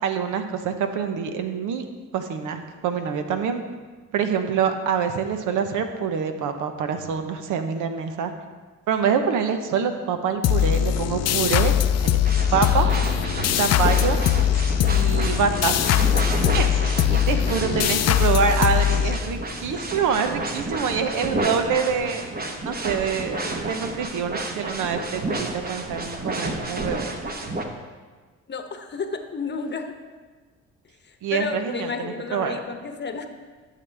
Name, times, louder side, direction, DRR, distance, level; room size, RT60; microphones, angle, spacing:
voice 1, 0.0-1.9 2.1-3.6 4.1-8.3 8.9-11.7 12.0-12.2 12.5-12.9 13.6-14.2 14.9-15.7 16.5-22.2 22.6-27.1 31.2-32.6, right 6 dB, 85° right, 7 dB, 0.8 m, -25 dB
sound 1, 10.4-19.7, left 10 dB, 60° left, 0.5 m, -21 dB
sound 2, 12.2-27.6, right 2 dB, 30° right, 1.0 m, -31 dB
voice 2, 28.5-29.9 31.0-33.3, left 4 dB, 35° left, 6 dB, 0.9 m, -31 dB
12.0 x 6.7 x 3.4 m, 1.4 s
cardioid pair, 90°, 30 cm